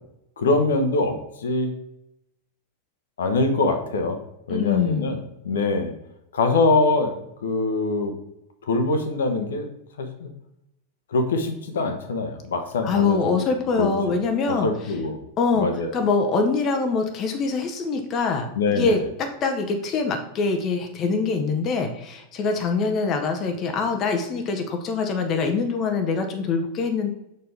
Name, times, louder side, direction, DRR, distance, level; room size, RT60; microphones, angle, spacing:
voice 1, 0.4-1.7 3.2-4.2 4.5-5.2 5.4-5.9 6.3-7.1 7.4-8.1 8.6-9.7 10.0-10.3 11.1-13.4 13.8-14.1 14.5-15.2 15.5-16.0 18.5-19.0, left 3 dB, 65° left, 6 dB, 0.8 m, -23 dB
voice 2, 4.5-5.1 12.8-14.7 15.4-15.7 15.9-19.0 19.4-27.1, left 4 dB, 30° left, 5 dB, 0.7 m, -24 dB
6.3 x 4.4 x 3.4 m, 0.84 s
figure-of-eight pair, 90°, 0 cm